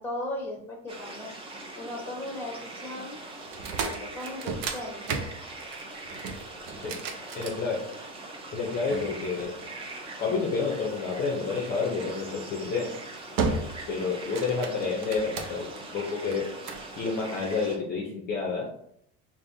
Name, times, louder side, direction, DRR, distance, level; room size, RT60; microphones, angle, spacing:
voice 1, 0.0-1.3 1.7-3.2 3.8-5.3, left 1 dB, 5° left, -1 dB, 1.0 m, -37 dB
sound 1, 0.9-17.8, right 2 dB, 20° right, 0.6 m, -42 dB
sound 2, 3.5-8.2 8.9-10.2 12.0-12.3 12.8-13.0 13.4-13.9 14.2-15.8 16.3-16.9, right 4 dB, 75° right, 0.7 m, -34 dB
voice 2, 7.3-7.9 8.5-9.6 10.2-12.9 13.9-16.5 17.0-18.7, left 4 dB, 35° left, -1 dB, 0.6 m, -29 dB
5.1 x 2.6 x 2.6 m, 0.70 s
cardioid pair, 165°, 29 cm